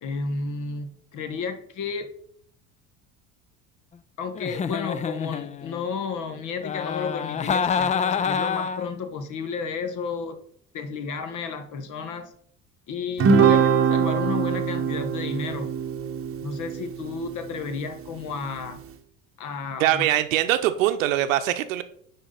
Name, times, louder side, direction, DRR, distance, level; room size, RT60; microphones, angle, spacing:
voice 1, 0.0-2.1 4.2-10.4 10.7-12.3 12.9-15.8 16.4-18.8 19.4-20.1, left 5 dB, 45° left, 9 dB, 1.3 m, -32 dB
Giggle, 4.3-5.8 6.6-8.9, left 6 dB, 20° left, 0.4 m, -27 dB
Guitar, 13.2-17.8, right 6 dB, 35° right, 1.0 m, -23 dB
voice 2, 19.8-21.8, right 13 dB, 70° right, 10 dB, 0.8 m, -22 dB
9.8 x 4.1 x 3.9 m, 0.63 s
figure-of-eight pair, 65°, 41 cm